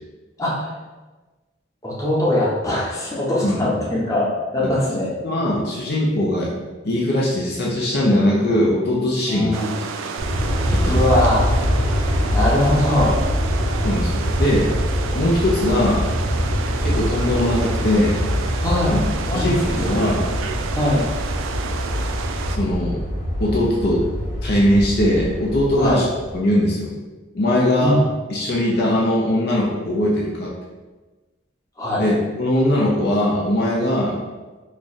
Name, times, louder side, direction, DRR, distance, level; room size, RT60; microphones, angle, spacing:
voice 1, 0.4-0.7 1.8-5.1 9.3-9.8 10.9-11.5 12.3-13.2 18.6-19.0 19.3-20.0 20.7-21.0 25.8-26.0 27.8-28.0 31.8-32.0, left 1 dB, 15° left, -6 dB, 0.8 m, -21 dB
voice 2, 5.2-6.5 6.8-9.6 10.7-11.0 13.8-14.7 15.1-16.1 16.8-18.2 18.9-19.0 19.3-20.3 22.6-23.0 23.4-24.0 24.4-26.1 26.3-26.9 27.3-28.0 28.3-30.5 32.0-34.2, left 1 dB, 55° left, -4 dB, 0.6 m, -20 dB
sound 1, 9.5-22.6, right 5 dB, 85° right, 0.3 m, -31 dB
Aircraft, 10.2-26.4, equal, 35° left, 1.3 m, -24 dB
3.1 x 2.4 x 4.0 m, 1.2 s
head